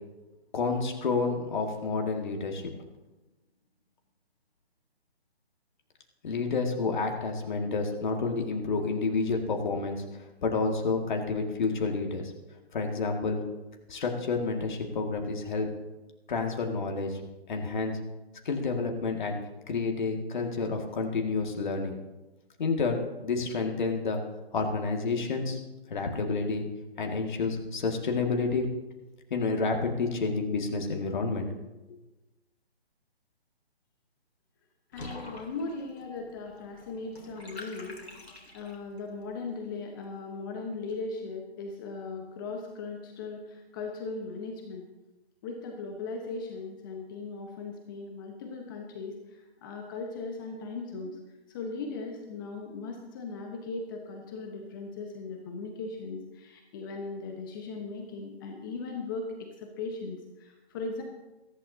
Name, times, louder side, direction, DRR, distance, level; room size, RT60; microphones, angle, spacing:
voice 1, 0.5-2.6 6.2-10.0 10.4-12.3 12.7-13.4 13.9-15.7 16.3-17.2 17.5-17.9 18.5-19.4 19.7-22.0 22.6-24.2 24.5-25.6 25.9-26.6 27.0-28.7 29.3-31.5, left 4 dB, 45° left, 3 dB, 2.0 m, -29 dB
Water / Bathtub (filling or washing), 34.9-39.0, left 2 dB, 75° left, 2.8 m, -46 dB
voice 2, 34.9-38.0 38.5-44.9 45.4-51.2 51.5-61.0, left 3 dB, 20° left, 3 dB, 1.0 m, -38 dB
21.5 x 11.5 x 2.8 m, 1.1 s
figure-of-eight pair, 145°, 32 cm